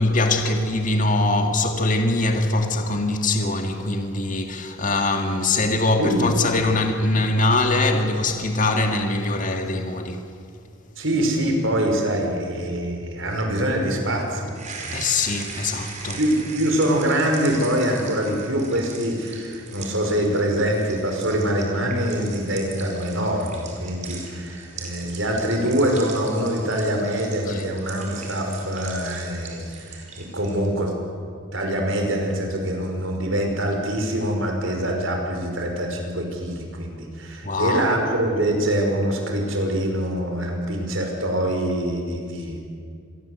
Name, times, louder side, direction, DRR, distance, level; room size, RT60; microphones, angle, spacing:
voice 1, 0.0-10.2 14.9-16.2 27.5-27.6 37.4-37.9, left 2 dB, 40° left, 2.0 m, -22 dB
voice 2, 6.0-6.3 11.0-15.1 16.2-30.9 31.5-42.6, right 1 dB, 65° right, 5.4 m, -24 dB
sound 1, 14.5-30.7, right 5 dB, 35° right, 4.6 m, -40 dB
27.5 x 22.0 x 8.1 m
head